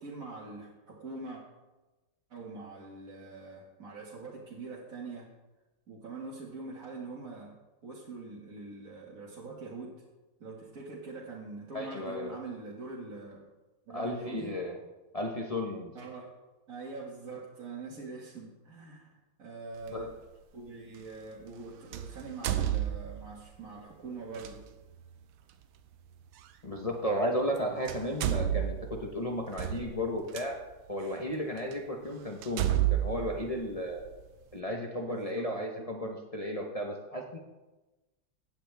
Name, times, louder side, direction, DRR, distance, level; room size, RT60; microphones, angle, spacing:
voice 1, 0.0-1.4 2.3-5.3 5.9-7.6 7.8-10.0 10.4-13.4 13.9-14.5 15.9-16.3 16.7-19.1 19.4-20.1 20.5-24.6 35.1-35.5, right 3 dB, 40° right, -5 dB, 2.1 m, -43 dB
voice 2, 11.7-12.4 13.9-14.8 15.1-15.9 19.9-20.2 26.6-30.6 30.9-34.1 34.5-37.4, equal, 45° left, 0 dB, 0.4 m, -34 dB
sound 1, 19.8-20.0 21.9-23.4 24.3-24.5 26.4-26.5 27.4-27.6 27.9-30.5 31.1-31.2 31.7-31.8 32.4-34.2, right 12 dB, 80° right, 1.6 m, -31 dB
16.5 x 9.9 x 3.4 m, 1.1 s
omnidirectional pair, 2.4 m